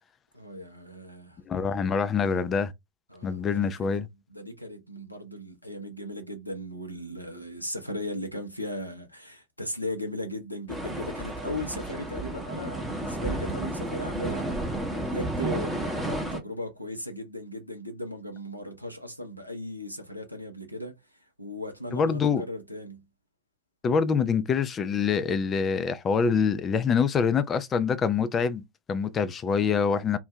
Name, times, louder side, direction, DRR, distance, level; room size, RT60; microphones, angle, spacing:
voice 1, 0.3-1.4 3.1-4.0 4.3-14.5 14.9-23.0, left 1 dB, 90° left, 0.6 m, -37 dB
voice 2, 1.5-2.7 3.2-4.1 21.9-22.4 23.8-30.2, left 6 dB, 25° left, 0.4 m, -25 dB
sound 1, 10.7-16.4, right 1 dB, ahead, 0.8 m, -32 dB
2.6 x 2.2 x 3.3 m
figure-of-eight pair, 90°, 0 cm